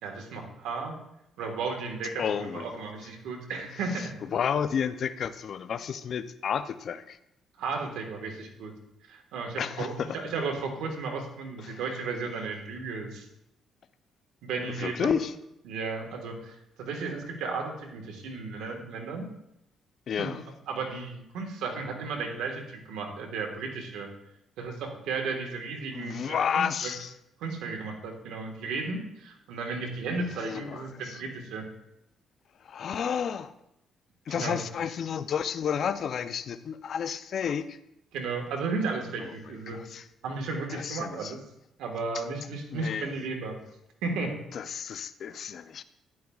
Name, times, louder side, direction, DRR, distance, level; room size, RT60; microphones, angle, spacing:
voice 1, 0.0-1.0 1.4-4.1 7.6-8.7 9.0-13.3 14.4-15.2 15.7-19.2 20.2-20.4 20.7-24.1 24.6-26.9 27.4-31.6 34.3-34.6 38.1-39.8 40.2-41.4 41.8-43.6 44.0-44.4, right 4 dB, 90° right, 3 dB, 1.5 m, -34 dB
voice 2, 2.2-2.8 4.0-7.2 9.6-10.2 11.6-11.8 14.8-15.3 20.1-20.4 25.9-27.1 30.1-31.2 32.6-33.5 34.3-37.8 39.7-40.1 40.7-41.3 42.1-42.2 42.7-43.1 44.5-45.8, left 7 dB, 60° left, 13 dB, 0.5 m, -31 dB
12.5 x 10.0 x 2.4 m, 0.83 s
cardioid pair, 90°, 0 cm